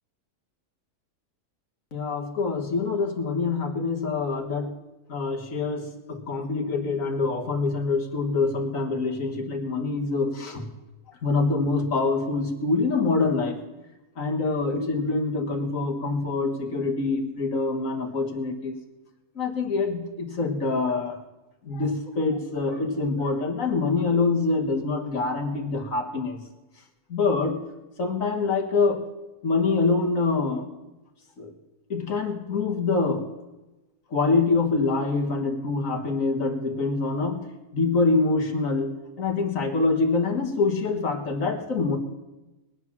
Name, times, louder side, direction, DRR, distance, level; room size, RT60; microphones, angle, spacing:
voice 1, 1.9-4.7 5.1-10.6 11.2-13.6 14.2-18.8 19.4-21.2 21.7-26.4 27.1-27.6 28.0-29.0 29.4-30.7 31.4-31.5 31.9-33.3 34.1-37.5 37.7-42.0, left 3 dB, 60° left, 3 dB, 1.9 m, -25 dB
21.0 x 8.2 x 6.0 m, 1.1 s
omnidirectional pair, 1.6 m